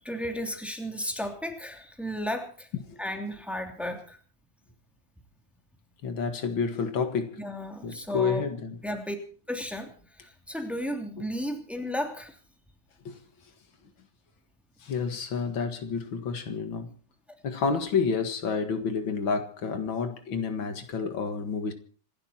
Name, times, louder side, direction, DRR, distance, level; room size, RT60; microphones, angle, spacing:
voice 1, 0.0-2.7 3.0-4.2 7.4-8.5 8.8-9.2 9.5-9.9 10.2-12.3, equal, ahead, 2.9 m, -34 dB
voice 2, 6.0-7.4 7.8-8.8 13.1-13.2 14.8-16.9 17.4-21.7, left 5 dB, 80° left, 2.6 m, -29 dB
27.0 x 12.0 x 4.4 m
omnidirectional pair, 2.1 m